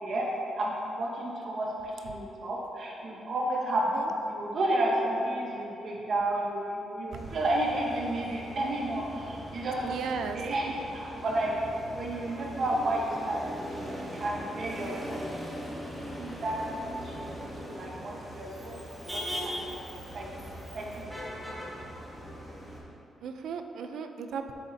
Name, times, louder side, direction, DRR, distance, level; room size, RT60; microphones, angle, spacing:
voice 1, 0.0-9.9 10.3-11.5 11.9-15.4 16.2-16.6 17.0-18.8 19.1-19.7 20.1-20.3 20.7-22.0, right 1 dB, 45° right, -3 dB, 1.2 m, -32 dB
Motor vehicle (road), 7.1-22.8, equal, 5° right, 1.6 m, -40 dB
voice 2, 9.8-10.4 23.2-24.5, right 6 dB, 75° right, 6 dB, 0.5 m, -36 dB
9.9 x 8.2 x 2.8 m, 2.9 s
wide cardioid pair, 160°, 0 cm